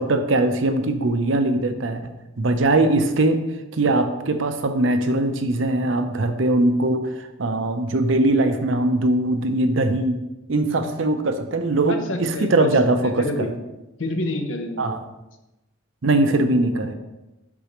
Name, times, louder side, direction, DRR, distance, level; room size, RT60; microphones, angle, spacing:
voice 1, 0.0-2.1 2.4-3.4 3.7-10.2 10.5-13.5 14.8-15.0 16.0-16.9, right 2 dB, 65° right, 8 dB, 0.7 m, -21 dB
voice 2, 11.9-12.7 13.0-13.5 14.0-14.9, left 1 dB, 65° left, 5 dB, 0.9 m, -28 dB
8.3 x 6.1 x 3.0 m, 0.98 s
head